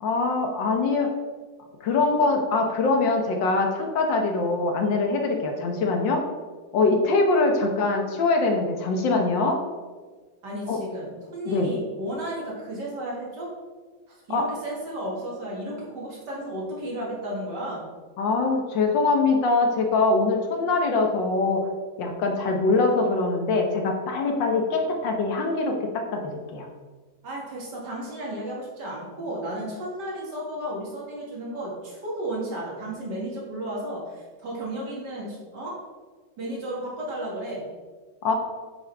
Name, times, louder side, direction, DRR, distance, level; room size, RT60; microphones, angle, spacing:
voice 1, 0.0-1.1 1.8-6.2 6.7-9.6 10.7-10.8 11.4-11.7 14.3-14.5 18.2-21.7 22.0-26.7 38.2-38.3, left 3 dB, 70° left, 3 dB, 1.7 m, -23 dB
voice 2, 10.4-13.5 14.1-17.9 27.2-35.8 36.4-37.7, right 1 dB, 60° right, -4 dB, 2.6 m, -33 dB
8.6 x 6.9 x 3.4 m, 1.4 s
omnidirectional pair, 2.1 m